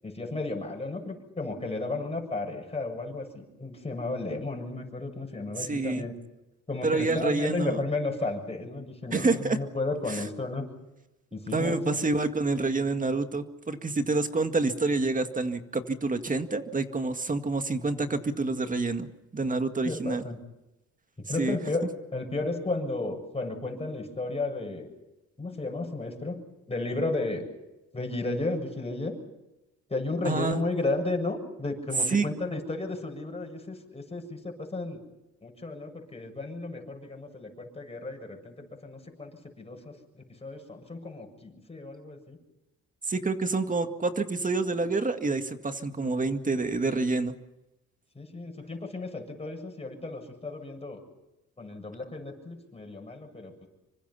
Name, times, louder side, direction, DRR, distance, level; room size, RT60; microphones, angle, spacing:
voice 1, 0.0-6.1 6.7-10.7 11.3-11.9 19.8-20.4 21.3-24.9 25.4-27.5 27.9-29.2 29.9-35.0 35.4-38.5 38.8-39.3 39.6-42.4 48.2-51.0 51.6-53.7, left 2 dB, 20° left, 3 dB, 7.4 m, -33 dB
voice 2, 5.6-6.1 6.8-7.8 9.1-9.6 10.1-10.2 11.5-19.1 19.3-20.2 21.4-21.6 30.3-30.6 32.1-32.3 43.1-47.3, right 3 dB, 25° right, 8 dB, 2.0 m, -28 dB
27.0 x 24.5 x 5.7 m, 0.96 s
cardioid pair, 90°, 30 cm